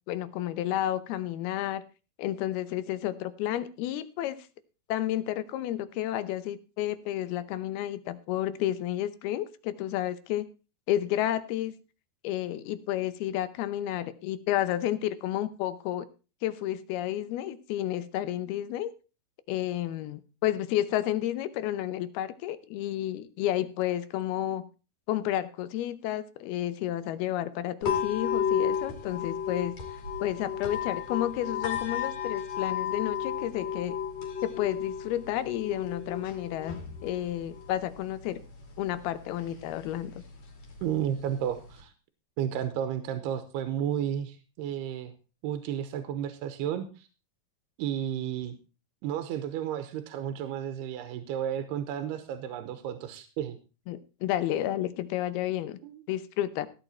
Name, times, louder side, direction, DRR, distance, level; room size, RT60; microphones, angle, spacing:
voice 1, 0.1-1.8 2.2-4.4 4.9-10.5 10.9-11.7 12.2-16.1 16.4-18.9 19.5-24.7 25.1-29.7 30.2-34.0 34.4-38.4 38.8-40.2 53.9-55.8 56.1-56.7, left 12 dB, 80° left, 14 dB, 2.7 m, -31 dB
sound 1, 27.8-41.8, left 8 dB, 45° left, 4.0 m, -34 dB
voice 2, 40.8-41.9 42.4-45.1 45.4-47.1 47.8-48.5 49.0-53.6 55.8-56.0, right 10 dB, 90° right, 9 dB, 3.0 m, -32 dB
15.5 x 9.0 x 4.3 m, 0.33 s
omnidirectional pair, 4.6 m